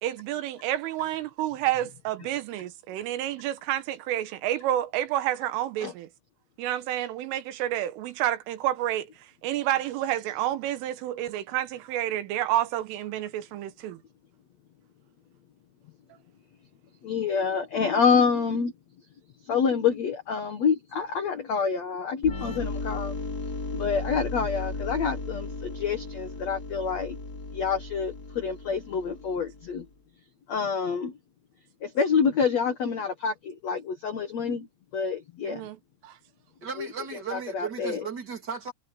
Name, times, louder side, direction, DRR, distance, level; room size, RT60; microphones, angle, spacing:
voice 1, 0.0-6.1 6.6-9.1 9.4-14.0 35.4-36.2, right 13 dB, 85° right, 3.9 m, -29 dB
voice 2, 17.0-18.7 19.5-23.1 23.7-27.2 27.5-29.8 30.5-31.1 31.8-34.7 34.9-35.6 36.8-36.9 37.3-38.0, left 6 dB, 75° left, 1.6 m, -27 dB
sound 1, 22.2-29.8, left 3 dB, 25° left, 3.1 m, -36 dB
voice 3, 36.6-38.7, right 6 dB, 25° right, 2.8 m, -36 dB
omnidirectional pair, 5.6 m